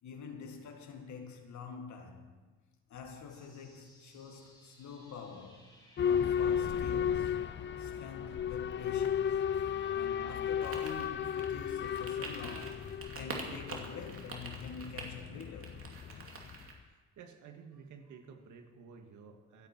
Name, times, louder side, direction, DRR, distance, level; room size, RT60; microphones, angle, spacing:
voice 1, 0.0-2.3 2.9-5.7 6.0-7.4 7.8-9.4 9.9-15.9, left 5 dB, 70° left, 2.0 m, -46 dB
sound 1, 3.3-11.4, left 1 dB, 15° left, 3.9 m, -59 dB
Boat Water vehicle / Alarm, 6.0-16.6, left 8 dB, 40° left, 0.4 m, -34 dB
sound 2, 10.6-16.7, right 4 dB, 45° right, 2.5 m, -46 dB
voice 2, 16.8-19.7, right 6 dB, 80° right, 1.9 m, -53 dB
25.0 x 8.7 x 4.5 m
cardioid pair, 90°, 30 cm